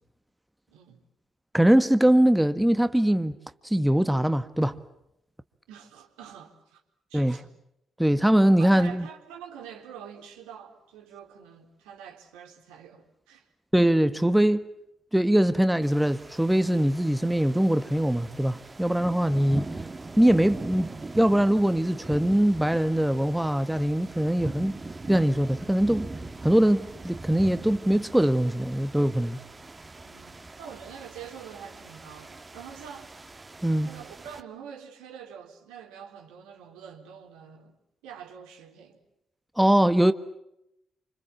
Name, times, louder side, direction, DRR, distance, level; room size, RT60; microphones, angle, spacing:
voice 1, 0.7-1.0 5.7-6.8 7.1-7.5 8.6-13.5 30.0-33.2 33.8-37.8 38.0-39.0, right 8 dB, 75° right, 4.0 m, -45 dB
voice 2, 1.5-3.4 3.6-4.8 7.1-7.4 8.0-9.1 13.7-14.7 15.1-19.6 20.2-24.8 25.1-26.1 26.4-29.4 33.6-33.9 39.6-40.1, right 1 dB, 5° right, 1.5 m, -22 dB
sound 1, 15.8-34.4, right 3 dB, 25° right, 2.3 m, -41 dB
28.5 x 27.0 x 7.4 m
hypercardioid pair, 40°, 0 cm